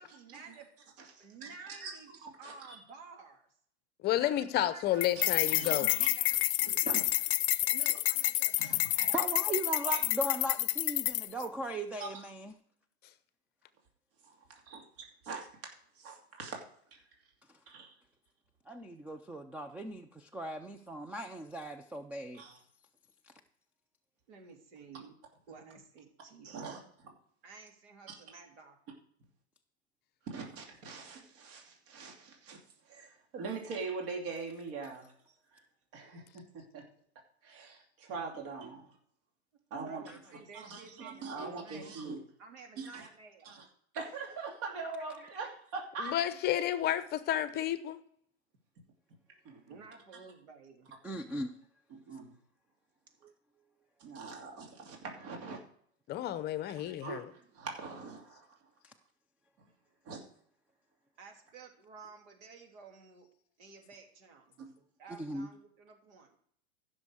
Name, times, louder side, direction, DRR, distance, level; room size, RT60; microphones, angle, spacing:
voice 1, 0.2-0.7 1.2-2.1 2.4-3.5 4.2-6.8 7.7-9.3 24.3-25.2 25.5-26.9 27.4-28.8 39.9-42.0 42.4-43.6 49.7-50.9 61.2-63.3 63.6-64.6 65.0-66.4, right 4 dB, 80° right, 3.1 m, -53 dB
voice 2, 1.2-1.9 2.2-2.5 5.2-6.1 6.8-7.3 9.1-9.2 9.8-10.0 12.0-12.1 14.5-14.8 15.2-15.5 16.0-16.6 17.7-17.9 22.4-22.6 26.4-26.8 28.1-28.2 30.3-32.6 32.9-35.1 35.5-35.6 35.9-36.8 37.4-38.9 39.7-40.0 40.5-42.2 42.8-43.1 43.4-43.6 43.9-46.1 49.4-49.6 52.1-52.3 54.0-55.6 56.7-58.5 60.0-60.2 64.6-64.7, right 4 dB, 50° right, 2.7 m, -42 dB
voice 3, 4.0-5.9 46.0-48.0 56.1-57.3, left 12 dB, 30° left, 0.7 m, -31 dB
sound 1, 5.0-11.4, left 17 dB, 80° left, 0.5 m, -29 dB
voice 4, 9.1-12.5 18.7-22.4 23.2-23.3 40.1-40.2 51.0-51.5 53.2-53.3 58.8-58.9 65.1-65.5, right 1 dB, 5° right, 0.3 m, -38 dB
15.0 x 6.4 x 4.8 m
supercardioid pair, 135°, 33 cm